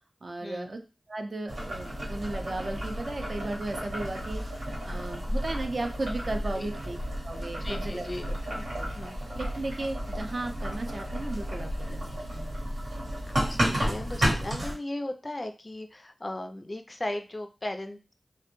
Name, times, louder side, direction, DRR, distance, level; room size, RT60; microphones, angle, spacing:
voice 1, 0.2-0.8 1.1-7.0 7.2-8.1 8.6-8.9 9.3-12.0 12.3-12.5, right 2 dB, 55° right, 5 dB, 0.4 m, -35 dB
Boiling, 1.5-14.7, equal, 90° right, 1.0 m, -32 dB
voice 2, 7.6-8.3 8.5-8.7 8.9-9.2 13.5-18.1, left 1 dB, 30° left, 7 dB, 0.3 m, -37 dB
2.1 x 2.1 x 2.9 m, 0.32 s
wide cardioid pair, 60°, 0 cm